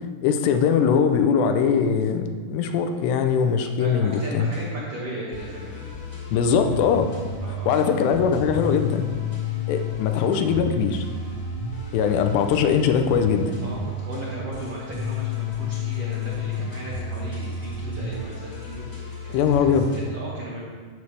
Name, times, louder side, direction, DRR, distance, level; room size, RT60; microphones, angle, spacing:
voice 1, 0.2-4.5 6.3-7.1 7.5-9.0 9.7-11.1 11.9-13.6 19.3-19.9, left 6 dB, 85° left, 6 dB, 2.8 m, -21 dB
voice 2, 3.7-5.9 7.4-7.7 8.0-8.1 13.6-20.6, equal, 75° right, -5 dB, 1.3 m, -36 dB
sound 1, 4.1-4.6 5.3-20.0, left 4 dB, 40° left, 1.6 m, -32 dB
12.5 x 7.1 x 3.3 m, 1.5 s
omnidirectional pair, 4.9 m